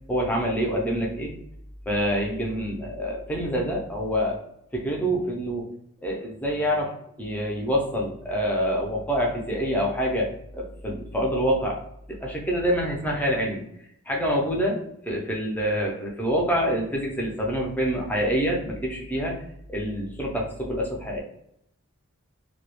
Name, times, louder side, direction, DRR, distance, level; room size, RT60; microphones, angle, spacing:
voice 1, 0.1-1.3 1.9-4.4 4.7-5.7 6.0-11.8 12.1-13.6 14.1-19.4 19.7-21.2, equal, 5° left, -2 dB, 0.4 m, -26 dB
2.2 x 2.1 x 2.9 m, 0.75 s
head